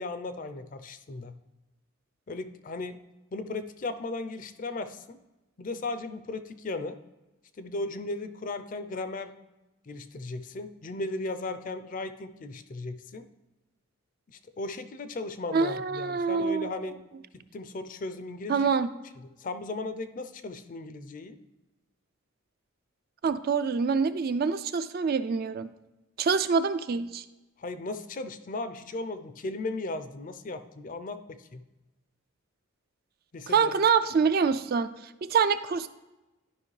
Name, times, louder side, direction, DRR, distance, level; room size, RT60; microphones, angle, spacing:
voice 1, 0.0-1.3 2.3-3.0 3.3-5.2 5.6-7.0 7.6-9.3 9.9-13.3 14.6-17.0 17.3-18.7 19.4-21.4 27.6-31.2 31.5-31.6 33.3-33.7, left 2 dB, 40° left, 10 dB, 0.4 m, -36 dB
voice 2, 15.5-16.7 18.5-18.9 23.2-25.7 26.2-27.2 33.5-34.9 35.2-35.9, right 5 dB, 45° right, 12 dB, 0.3 m, -25 dB
11.5 x 5.2 x 3.2 m, 1.0 s
head